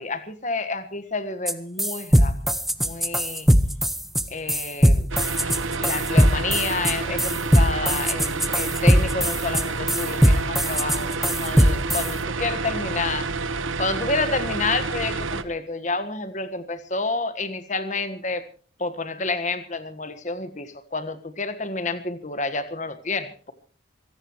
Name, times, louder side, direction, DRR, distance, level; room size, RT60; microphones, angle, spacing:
voice 1, 0.0-2.3 2.8-3.5 4.3-5.0 5.8-13.3 13.8-18.4 18.8-23.5, left 3 dB, 35° left, 12 dB, 1.5 m, -29 dB
sound 1, 1.5-1.6 1.8-12.1, equal, ahead, 0.8 m, -19 dB
sound 2, 5.1-15.4, right 3 dB, 80° right, 1.3 m, -29 dB
24.5 x 17.0 x 3.1 m, 0.40 s
head